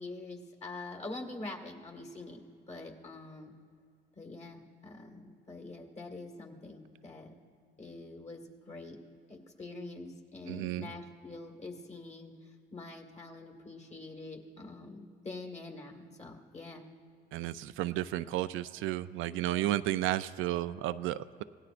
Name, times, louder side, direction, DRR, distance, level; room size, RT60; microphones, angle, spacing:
voice 1, 0.0-2.4 2.7-3.5 4.2-7.4 7.8-9.0 9.3-12.3 12.7-16.8, left 2 dB, 35° left, 3 dB, 1.9 m, -45 dB
voice 2, 10.5-10.9 17.3-21.4, right 14 dB, 85° right, 13 dB, 0.4 m, -33 dB
25.0 x 17.5 x 2.5 m, 2.3 s
cardioid pair, 90°, 20 cm